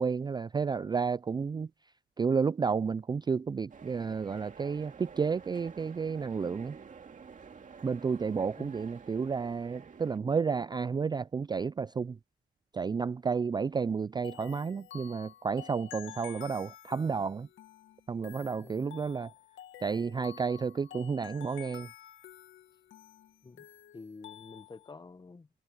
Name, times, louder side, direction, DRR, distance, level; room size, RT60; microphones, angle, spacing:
voice 1, 0.0-1.7 2.2-6.8 7.8-12.2 12.7-17.5 18.1-19.3 19.8-21.9, right 5 dB, 20° right, 0.3 m, -31 dB
sound 1, 3.7-10.2, right 6 dB, 40° right, 2.4 m, -50 dB
sound 2, 14.2-24.9, left 12 dB, 75° left, 1.7 m, -50 dB
voice 2, 23.9-25.5, left 4 dB, 20° left, 0.9 m, -48 dB
cardioid pair, 90°, 20 cm